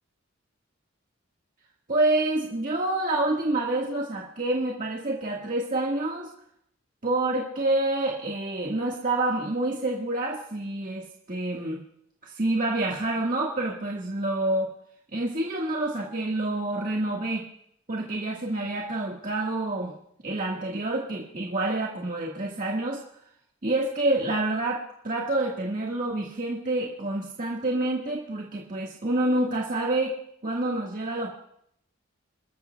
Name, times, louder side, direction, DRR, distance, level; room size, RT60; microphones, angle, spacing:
voice 1, 1.9-6.3 7.0-11.8 12.2-14.7 15.1-17.4 17.9-19.9 20.2-23.0 23.6-30.2 30.4-31.3, right 2 dB, 40° right, -3 dB, 1.6 m, -27 dB
28.0 x 13.0 x 2.3 m, 0.72 s
head